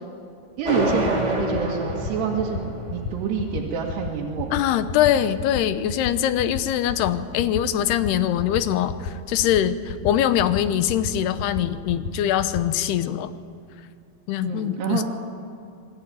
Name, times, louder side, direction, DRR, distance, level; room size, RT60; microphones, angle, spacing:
sound 1, 0.6-0.7 0.9-1.1 1.4-1.6 1.9-2.1 2.4-2.6 2.9-3.1 3.4-3.6 3.9-4.1 4.4-4.6 4.9-5.1 5.4-5.6 5.9-6.1 6.4-6.6 6.9-7.1 7.4-7.6 7.9-8.1 8.4-8.6 8.9-9.1 9.4-9.6 9.9-10.1 10.4-10.6 10.9-11.1 11.4-11.6 11.9-12.1 12.4-12.6, left 5 dB, 65° left, 2.5 m, -31 dB
sound 2, 0.6-3.6, equal, 15° right, 1.7 m, -27 dB
voice 1, 0.6-4.5 14.4-15.0, right 6 dB, 90° right, -3 dB, 4.1 m, -27 dB
voice 2, 4.5-13.3 14.3-15.0, left 11 dB, 90° left, 12 dB, 3.0 m, -23 dB
26.5 x 20.5 x 9.2 m, 2.4 s
omnidirectional pair, 4.6 m